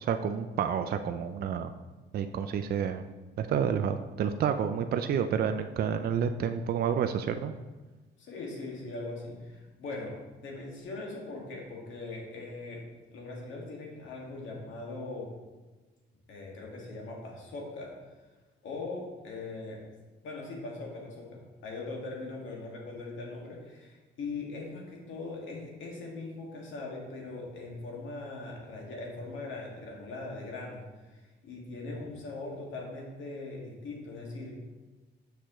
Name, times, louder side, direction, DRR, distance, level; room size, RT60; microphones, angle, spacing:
voice 1, 0.0-1.7 2.1-3.0 3.4-7.5, right 7 dB, 50° right, 8 dB, 0.4 m, -29 dB
voice 2, 8.2-10.1 10.4-12.8 13.1-15.3 16.3-17.9 18.6-19.8 20.2-34.5, left 3 dB, 75° left, -2 dB, 1.9 m, -40 dB
6.6 x 6.1 x 3.0 m, 1.2 s
cardioid pair, 90°, 20 cm